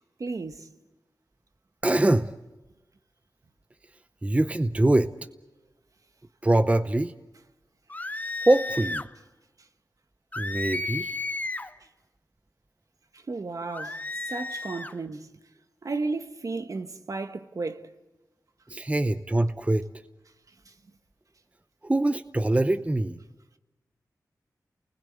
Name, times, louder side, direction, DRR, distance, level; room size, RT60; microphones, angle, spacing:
voice 1, 0.2-0.7 13.1-15.3 15.8-17.9, right 3 dB, 55° right, 1.5 m, -33 dB
voice 2, 1.8-2.3 4.2-5.1 6.4-7.1 8.4-9.1 10.4-11.2 18.7-19.9 21.8-23.2, right 1 dB, 20° right, 0.8 m, -23 dB
sound 1, 7.9-9.1 10.3-11.7 13.7-14.9, left 2 dB, 25° left, 0.8 m, -33 dB
29.0 x 20.0 x 8.3 m
wide cardioid pair, 75°, 7 cm